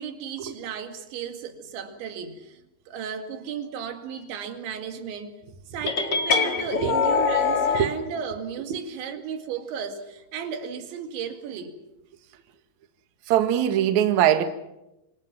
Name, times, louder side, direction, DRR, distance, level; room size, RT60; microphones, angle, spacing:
voice 1, 0.0-2.6 2.9-5.3 5.7-11.8, right 7 dB, 85° right, 4.4 m, -34 dB
sound 1, 5.9-7.8, left 5 dB, 45° left, 1.4 m, -23 dB
voice 2, 13.3-14.4, right 10 dB, 55° right, 2.2 m, -21 dB
26.5 x 26.5 x 5.9 m
omnidirectional pair, 5.1 m